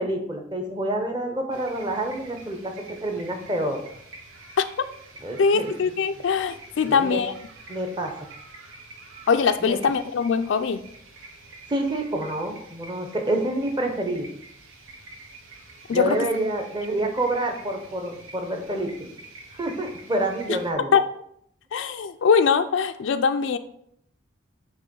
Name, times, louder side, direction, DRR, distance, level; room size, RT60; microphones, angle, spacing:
voice 1, 0.0-3.8 5.2-5.7 6.2-6.3 6.8-7.2 7.7-8.2 9.6-9.8 11.7-14.3 15.9-19.1 19.5-20.9, right 1 dB, 20° right, 4 dB, 0.9 m, -28 dB
sound 1, 1.5-20.7, right 2 dB, 85° right, 1.2 m, -47 dB
voice 2, 5.4-7.3 9.3-10.8 15.9-16.3 20.9-21.0 21.7-23.6, left 6 dB, 70° left, 9 dB, 0.3 m, -22 dB
8.3 x 3.0 x 5.3 m, 0.72 s
head